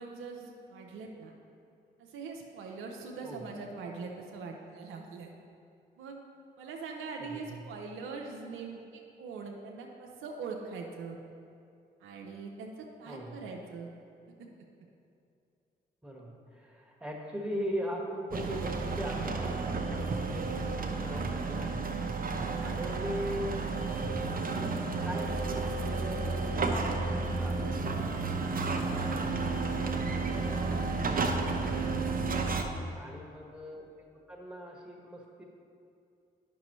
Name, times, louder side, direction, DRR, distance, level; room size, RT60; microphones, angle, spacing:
voice 1, 0.0-1.3 2.0-5.3 6.0-6.2 6.6-11.2 12.0-13.9 22.2-22.8 28.4-29.1 32.4-33.0, right 4 dB, 80° right, 1 dB, 0.7 m, -42 dB
voice 2, 3.2-3.5 7.2-7.7 13.1-13.5 16.0-21.9 22.6-23.6 25.0-27.9 28.4-29.8 30.1-32.3 32.9-33.8 34.3-35.4, equal, 5° right, -1 dB, 1.6 m, -40 dB
sound 1, 18.3-32.6, right 3 dB, 45° right, 0.8 m, -32 dB
9.4 x 6.1 x 3.1 m, 2.5 s
hypercardioid pair, 45°, 20 cm